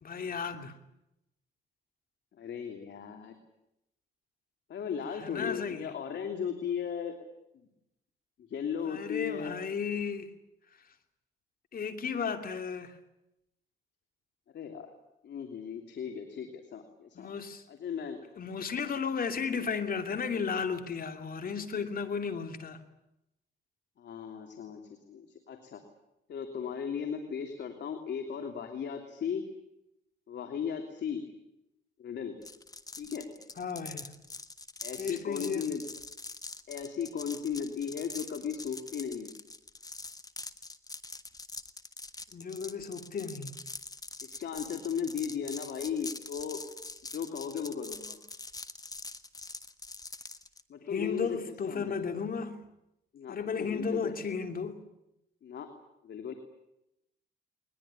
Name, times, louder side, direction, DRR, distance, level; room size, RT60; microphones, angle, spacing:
voice 1, 0.0-0.7 5.1-5.8 8.8-10.3 11.7-13.0 17.1-17.6 18.4-22.8 33.6-34.1 35.0-35.7 42.3-43.6 50.9-52.6 53.3-54.8, left 6 dB, 45° left, 2.9 m, -34 dB
voice 2, 2.4-3.4 4.7-7.1 7.5-7.7 8.5-9.6 14.5-14.9 15.2-17.3 17.7-18.2 24.0-25.8 26.3-29.5 30.3-31.2 32.0-32.4 33.0-33.3 34.8-35.8 36.7-39.3 44.2-46.6 47.1-48.2 50.7-51.4 51.7-52.0 53.1-54.1 55.4-55.7 56.0-56.3, left 7 dB, 60° left, 3.1 m, -36 dB
sound 1, 32.4-50.6, left 3 dB, 20° left, 1.6 m, -44 dB
21.5 x 21.0 x 10.0 m
cardioid pair, 90°, 20 cm